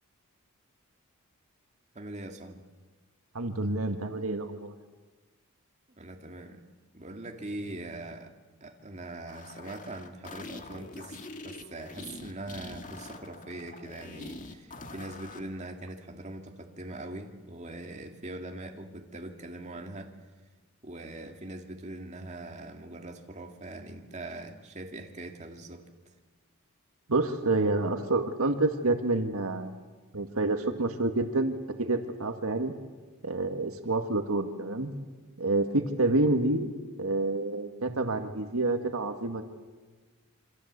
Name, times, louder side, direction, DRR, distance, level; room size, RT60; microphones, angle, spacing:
voice 1, 1.9-2.6 5.9-6.6 6.9-8.3 8.6-11.2 11.4-20.1 20.8-25.9, right 2 dB, 30° right, 3 dB, 2.2 m, -42 dB
voice 2, 3.3-4.7 27.1-29.8 30.1-31.5 31.8-32.7 33.2-34.9 35.4-36.7 37.0-39.4, right 2 dB, 70° right, 6 dB, 1.9 m, -28 dB
sound 1, 9.3-15.5, left 2 dB, 35° left, 1.9 m, -44 dB
27.5 x 25.0 x 8.2 m, 1.3 s
head